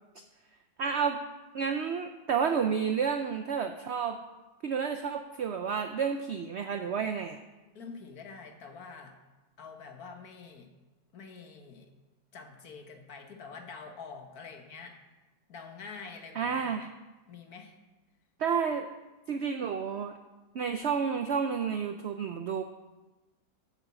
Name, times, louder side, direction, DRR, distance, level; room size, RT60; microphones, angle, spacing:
voice 1, 0.8-1.2 1.5-4.2 4.6-7.4 16.4-16.9 18.4-18.9 19.3-20.2 20.5-22.6, right 6 dB, 75° right, 7 dB, 0.6 m, -30 dB
voice 2, 7.7-9.2 9.6-10.7 11.1-11.9 12.3-15.0 15.5-16.8 17.3-17.8, left 5 dB, 65° left, 4 dB, 1.6 m, -46 dB
7.6 x 7.1 x 7.4 m, 1.1 s
omnidirectional pair, 1.8 m